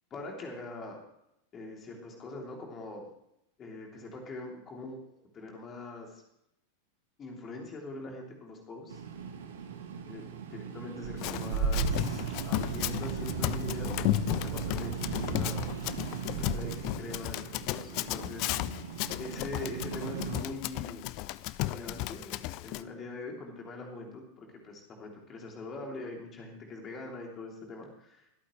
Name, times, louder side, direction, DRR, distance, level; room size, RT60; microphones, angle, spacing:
voice 1, 0.1-1.0 1.5-3.1 3.6-6.2 7.2-9.0 10.0-16.0 16.2-16.7 17.0-18.7 19.2-21.0 21.7-28.3, left 2 dB, 25° left, 1 dB, 3.0 m, -43 dB
sound 1, 8.9-20.4, right 5 dB, 65° right, 1.5 m, -36 dB
Run, 11.2-22.8, left 17 dB, 45° left, 0.4 m, -34 dB
23.0 x 8.6 x 3.2 m, 0.79 s
figure-of-eight pair, 90°, 0 cm